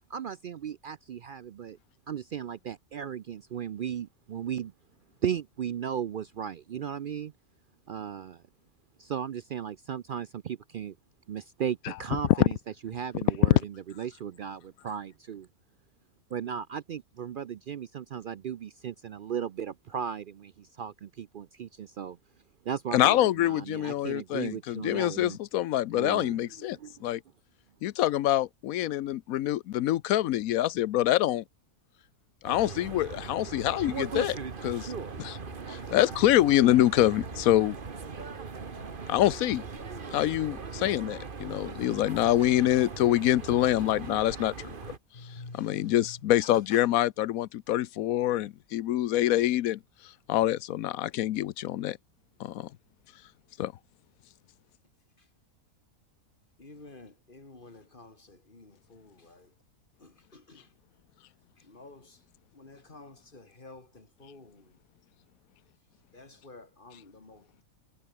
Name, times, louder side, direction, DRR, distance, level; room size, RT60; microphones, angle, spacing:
voice 1, 0.1-1.8 2.1-4.7 5.2-7.3 7.9-8.4 9.0-11.0 11.3-12.6 12.8-15.5 16.3-22.2 22.6-25.4 25.9-27.1, right 8 dB, 75° right, 0.4 m, -36 dB
voice 2, 22.9-27.2 27.8-31.4 32.4-34.9 35.2-35.4 35.7-37.8 39.1-39.6 40.1-44.8 45.5-49.8 50.3-52.0 52.4-52.7 53.6-53.7, left 13 dB, 80° left, 1.1 m, -26 dB
sound 1, 32.4-45.0, right 5 dB, 40° right, 1.5 m, -39 dB
sound 2, 35.1-40.3, left 2 dB, 55° left, 6.1 m, -53 dB
voice 3, 45.1-46.9 55.2-55.3 56.6-59.5 60.0-60.7 61.6-62.2 62.5-64.8 66.1-67.6, left 3 dB, 35° left, 2.9 m, -50 dB
omnidirectional pair, 1.5 m